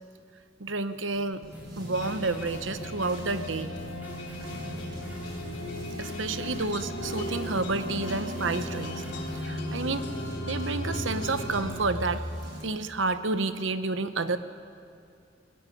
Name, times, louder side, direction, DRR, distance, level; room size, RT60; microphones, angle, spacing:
voice 1, 0.6-1.4 1.8-3.7 6.0-9.0 9.3-10.1 10.5-12.2 12.6-14.4, right 3 dB, 80° right, 11 dB, 1.0 m, -30 dB
sound 1, 1.1-12.6, equal, 60° right, 7.2 m, -40 dB
sound 2, 1.5-9.5, equal, 10° right, 7.9 m, -44 dB
sound 3, 1.9-12.6, left 1 dB, 70° left, 3.4 m, -38 dB
21.0 x 18.5 x 8.6 m, 2.5 s
head